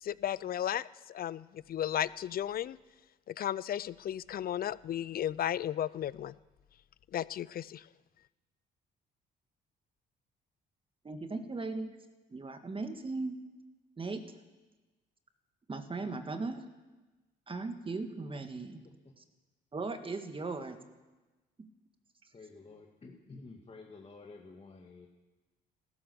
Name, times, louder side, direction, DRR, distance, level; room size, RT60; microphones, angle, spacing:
voice 1, 0.0-2.8 3.3-6.3 7.1-7.9, left 11 dB, 50° left, 20 dB, 0.5 m, -34 dB
voice 2, 11.0-12.0 12.3-13.4 14.0-14.3 15.7-16.7 17.5-18.8 19.2-19.3 19.7-20.8 21.6-21.7, right 3 dB, 30° right, 7 dB, 1.8 m, -38 dB
voice 3, 22.3-25.1, left 3 dB, 30° left, 0 dB, 2.0 m, -51 dB
15.0 x 13.0 x 7.0 m, 1.2 s
supercardioid pair, 75°, 19 cm